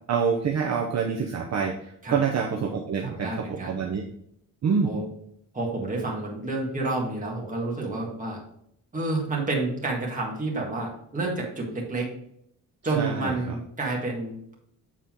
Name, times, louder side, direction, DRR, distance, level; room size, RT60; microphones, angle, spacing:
voice 1, 0.1-4.0 4.6-4.9 12.9-13.6, right 6 dB, 50° right, 1 dB, 0.7 m, -26 dB
voice 2, 3.0-3.8 4.8-5.0 5.5-8.4 8.9-12.1 12.8-14.5, right 2 dB, 25° right, -2 dB, 1.6 m, -29 dB
7.5 x 4.1 x 3.7 m, 0.72 s
wide cardioid pair, 160°, 35 cm